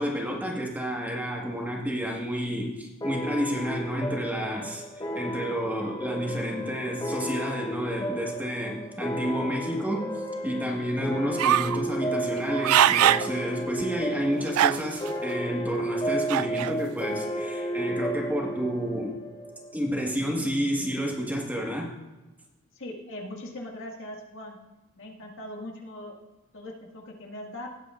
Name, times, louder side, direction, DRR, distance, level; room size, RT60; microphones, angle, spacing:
voice 1, 0.0-19.2 19.7-21.9, equal, 10° right, -1 dB, 1.6 m, -30 dB
sound 1, 3.0-20.1, right 1 dB, 20° left, 0.9 m, -33 dB
sound 2, 11.4-11.8 12.4-13.3 13.8-13.9 14.5-15.1 16.3-16.7, right 11 dB, 85° right, 0.3 m, -21 dB
voice 2, 22.8-24.6 25.0-26.1 26.5-27.7, left 1 dB, 65° left, 0 dB, 1.9 m, -40 dB
18.0 x 8.0 x 2.5 m, 1.1 s
head